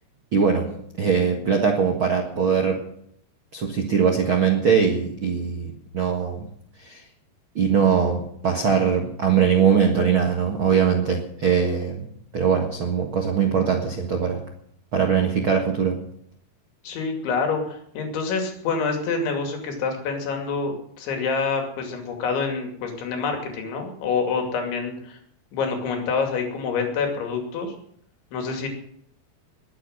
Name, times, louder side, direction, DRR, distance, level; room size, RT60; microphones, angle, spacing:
voice 1, 0.3-0.7 1.0-2.9 3.5-6.5 6.8-7.0 7.5-12.1 12.3-14.4 14.9-16.0, right 6 dB, 60° right, 2 dB, 1.3 m, -21 dB
voice 2, 16.8-25.2 25.5-27.7 28.3-28.7, left 5 dB, 90° left, 3 dB, 4.9 m, -27 dB
21.0 x 8.8 x 6.5 m, 0.70 s
omnidirectional pair, 5.1 m